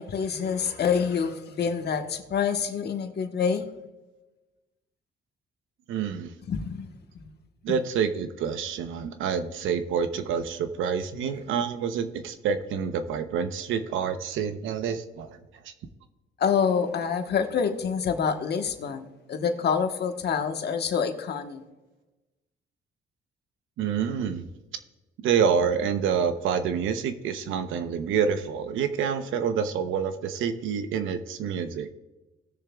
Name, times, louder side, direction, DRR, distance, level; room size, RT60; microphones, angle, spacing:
voice 1, 0.0-3.7 6.5-6.9 7.7-7.8 16.4-21.6, left 6 dB, 55° left, 6 dB, 1.3 m, -27 dB
voice 2, 5.9-6.3 7.6-15.3 23.8-24.4 25.2-31.9, right 7 dB, 85° right, 9 dB, 0.9 m, -27 dB
18.5 x 6.8 x 2.4 m, 1.1 s
cardioid pair, 90°, 20 cm